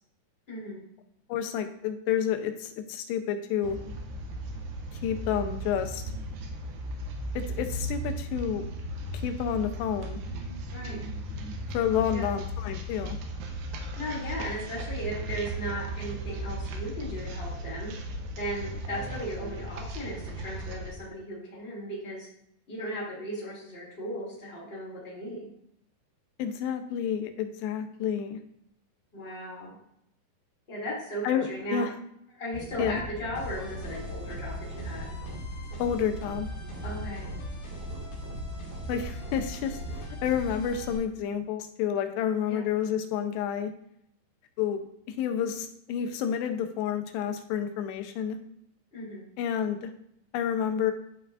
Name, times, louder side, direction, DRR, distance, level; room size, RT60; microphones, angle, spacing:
voice 1, 0.5-0.8 10.7-11.0 12.1-12.3 14.0-17.9 18.4-22.3 22.7-25.5 29.1-29.7 30.7-31.8 32.4-35.2 36.8-37.3 42.4-42.6 48.9-49.2, equal, 20° left, -5 dB, 1.7 m, -36 dB
voice 2, 1.3-3.8 5.0-6.0 7.4-8.7 9.1-10.2 11.7-13.2 26.4-28.4 31.2-31.9 32.8-33.0 35.8-36.5 38.9-39.8 40.2-43.7 44.6-48.4 49.4-49.9 50.3-50.9, left 8 dB, 85° left, 8 dB, 2.9 m, -29 dB
sound 1, 3.6-20.9, right 1 dB, 80° right, 2.9 m, -36 dB
sound 2, 32.5-40.5, equal, 60° right, 3.4 m, -40 dB
sound 3, 33.3-41.0, equal, 65° left, 4.4 m, -41 dB
13.0 x 4.5 x 2.5 m, 0.73 s
omnidirectional pair, 4.9 m